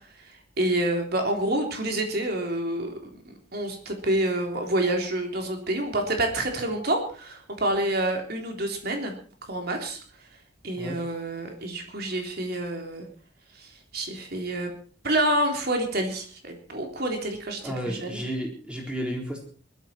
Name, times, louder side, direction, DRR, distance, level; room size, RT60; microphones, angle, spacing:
voice 1, 0.6-9.1 9.5-10.0 10.6-13.1 13.6-14.7 15.0-18.2, right 1 dB, 55° right, 3 dB, 3.7 m, -28 dB
voice 2, 17.6-19.4, equal, 5° right, 1 dB, 4.1 m, -32 dB
20.5 x 13.0 x 4.5 m, 0.42 s
head